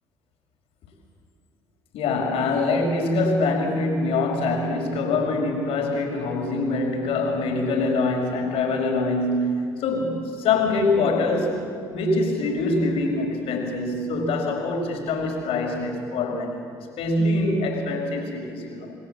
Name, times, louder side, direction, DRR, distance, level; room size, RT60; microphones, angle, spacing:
voice 1, 1.9-11.6 11.9-16.6 17.0-18.9, left 2 dB, 70° left, 2 dB, 5.0 m, -24 dB
28.5 x 19.5 x 7.5 m, 2.5 s
hypercardioid pair, 60°, 10 cm